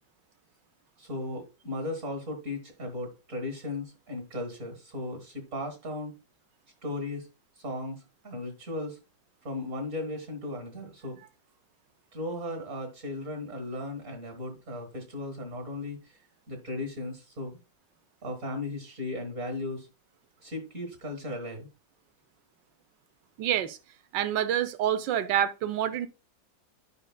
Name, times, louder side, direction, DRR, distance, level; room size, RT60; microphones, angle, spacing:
voice 1, 1.0-6.1 6.8-7.3 7.6-9.0 9.4-11.2 12.1-16.2 16.5-17.6 18.2-19.9 20.4-21.7, left 2 dB, 45° right, 1.8 m, -36 dB
voice 2, 23.4-23.8 24.1-26.1, right 10 dB, 75° right, 1.3 m, -27 dB
11.0 x 5.2 x 2.2 m
omnidirectional pair, 2.0 m